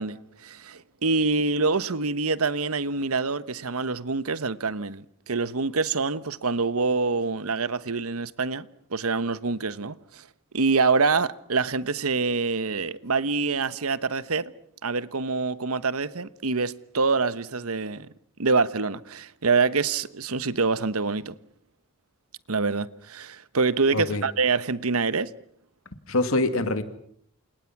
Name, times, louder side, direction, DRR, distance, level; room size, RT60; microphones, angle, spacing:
voice 1, 0.0-10.3 10.5-14.5 14.8-18.1 18.4-21.3 22.5-25.3, right 4 dB, 90° right, 1.1 m, -26 dB
voice 2, 23.9-24.2 26.1-26.8, left 2 dB, 75° left, 2.5 m, -24 dB
28.5 x 28.5 x 6.0 m
head